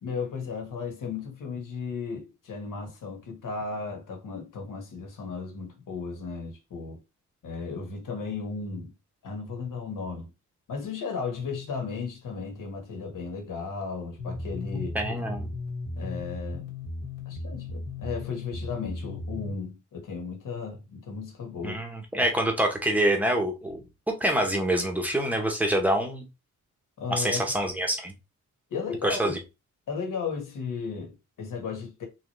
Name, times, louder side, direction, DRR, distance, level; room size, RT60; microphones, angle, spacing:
voice 1, 0.0-7.0 7.4-8.9 9.2-10.3 10.7-14.9 16.0-16.7 17.2-21.8 27.0-27.4 28.7-29.4 29.9-32.1, left 5 dB, 80° left, 1.4 m, -35 dB
sound 1, 14.2-19.5, left 3 dB, 50° left, 1.2 m, -36 dB
voice 2, 14.7-15.5 21.6-26.2 27.1-28.1 29.0-29.4, right 1 dB, 5° right, 0.8 m, -26 dB
3.7 x 3.1 x 3.0 m
wide cardioid pair, 170°, 32 cm